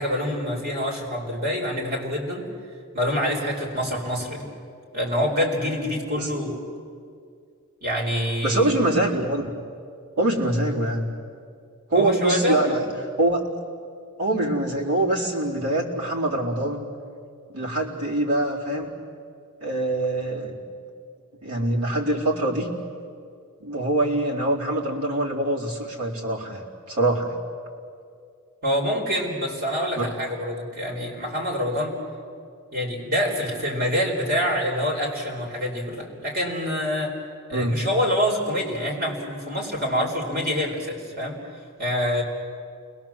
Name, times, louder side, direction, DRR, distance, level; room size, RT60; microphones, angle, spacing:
voice 1, 0.0-2.4 2.9-4.5 4.9-6.7 7.8-8.8 11.9-12.8 28.6-31.9 32.7-37.2 37.5-41.4 41.8-42.2, equal, 45° right, 0 dB, 4.5 m, -26 dB
voice 2, 8.4-9.5 10.2-11.1 11.9-12.8 13.2-13.5 14.2-16.9 17.5-18.9 19.6-20.6 21.4-22.7 23.6-27.4 30.0-30.1 37.5-37.8, right 1 dB, 75° right, -3 dB, 4.3 m, -24 dB
29.5 x 21.5 x 7.4 m, 2.2 s
head